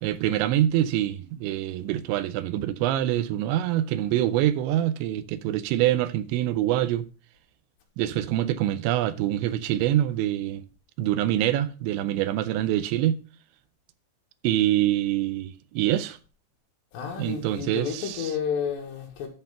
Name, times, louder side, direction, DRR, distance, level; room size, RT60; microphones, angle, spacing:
voice 1, 0.0-7.1 8.0-10.6 11.0-13.2 14.4-16.2 17.2-18.3, right 13 dB, 85° right, 2.9 m, -25 dB
voice 2, 16.9-19.3, left 7 dB, 70° left, 3.7 m, -31 dB
11.5 x 4.5 x 5.6 m
omnidirectional pair, 5.3 m